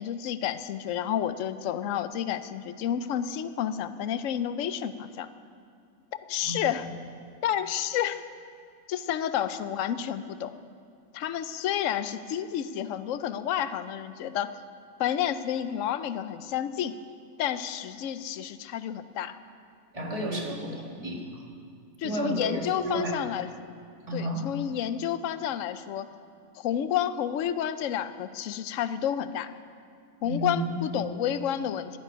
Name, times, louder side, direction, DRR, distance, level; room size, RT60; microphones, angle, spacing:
voice 1, 0.0-5.3 6.3-6.9 7.4-8.2 8.9-10.6 11.1-14.5 15.0-17.0 17.4-19.4 22.0-23.7 24.1-26.1 26.5-29.5 30.2-32.0, left 10 dB, 70° left, 12 dB, 1.0 m, -30 dB
voice 2, 19.9-21.4 22.0-23.2 24.1-24.4 30.2-30.7 31.0-31.1, right 1 dB, 25° right, -1 dB, 2.0 m, -32 dB
11.5 x 9.3 x 9.9 m, 2.3 s
omnidirectional pair, 1.5 m